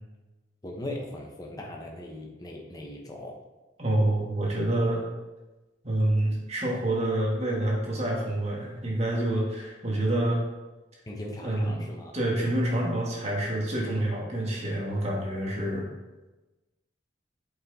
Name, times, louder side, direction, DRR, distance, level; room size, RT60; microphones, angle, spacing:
voice 1, 0.6-3.4 11.1-12.1, left 1 dB, 20° left, 0 dB, 0.9 m, -39 dB
voice 2, 3.8-5.1 5.8-10.4 11.4-11.9 12.1-15.9, right 1 dB, 35° right, -3 dB, 1.8 m, -27 dB
7.6 x 5.7 x 4.1 m, 1.1 s
head